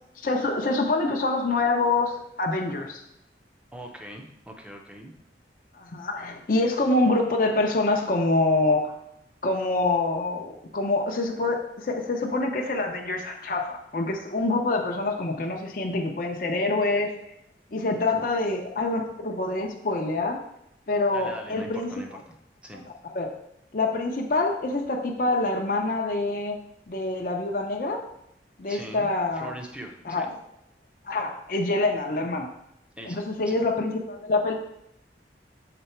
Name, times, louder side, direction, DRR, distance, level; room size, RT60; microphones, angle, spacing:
voice 1, 0.2-3.0 5.7-9.0 9.4-17.1 17.7-20.4 20.9-21.9 22.7-22.8 23.1-23.3 23.7-26.6 26.9-28.0 28.6-29.5 30.1-30.2 31.1-32.5 33.1-34.6, left 2 dB, 50° left, 1 dB, 0.6 m, -26 dB
voice 2, 3.7-5.1 18.1-18.2 21.1-22.4 22.6-22.8 28.7-29.1 29.3-30.3 33.0-33.6, equal, 5° right, 2 dB, 0.6 m, -41 dB
6.8 x 4.0 x 4.4 m, 0.81 s
head